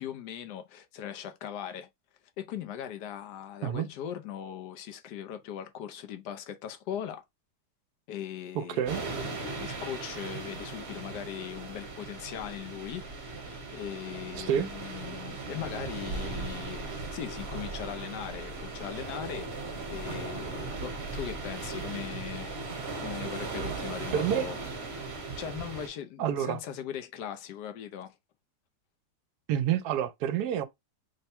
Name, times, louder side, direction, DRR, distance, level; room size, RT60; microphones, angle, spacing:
voice 1, 0.0-1.9 2.4-7.2 8.1-19.5 19.9-22.6 23.0-24.6 25.1-28.2, left 10 dB, 80° left, 1.2 m, -39 dB
voice 2, 8.5-9.0 14.3-14.7 24.1-24.5 26.2-26.6 29.5-30.7, right 10 dB, 75° right, 1.1 m, -28 dB
sound 1, 8.9-25.9, right 3 dB, 40° right, 1.2 m, -38 dB
3.5 x 2.1 x 4.2 m
omnidirectional pair, 1.8 m